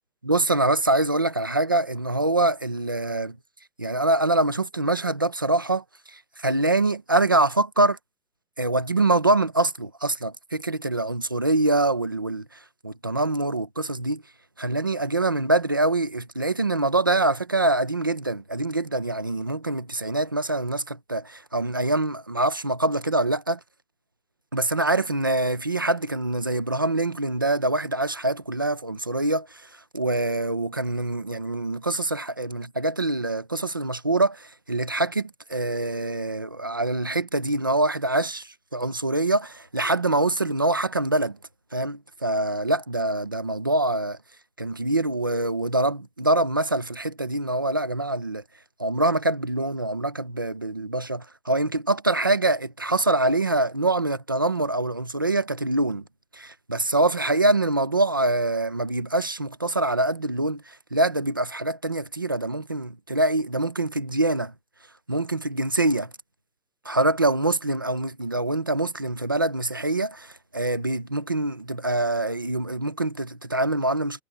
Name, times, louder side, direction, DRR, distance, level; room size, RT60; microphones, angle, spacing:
voice 1, 0.3-3.4 3.8-5.8 6.1-8.0 8.6-12.5 12.8-14.2 14.6-23.6 24.5-29.6 29.9-41.4 41.7-44.2 44.6-48.4 48.8-56.0 56.3-64.5 65.1-66.1 66.8-74.2, right 2 dB, 15° right, 0.5 m, -24 dB
hypercardioid pair, 165°, 44 cm